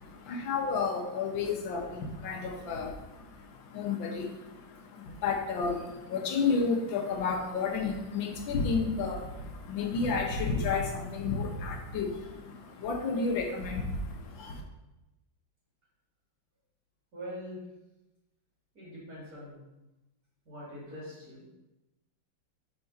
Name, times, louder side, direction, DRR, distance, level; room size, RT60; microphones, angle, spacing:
voice 1, 0.0-14.6, left 4 dB, 75° left, 1 dB, 1.6 m, -32 dB
voice 2, 17.1-17.6 18.7-19.6 20.4-21.4, equal, 45° right, -9 dB, 2.5 m, -43 dB
4.8 x 3.7 x 5.4 m, 0.98 s
omnidirectional pair, 2.1 m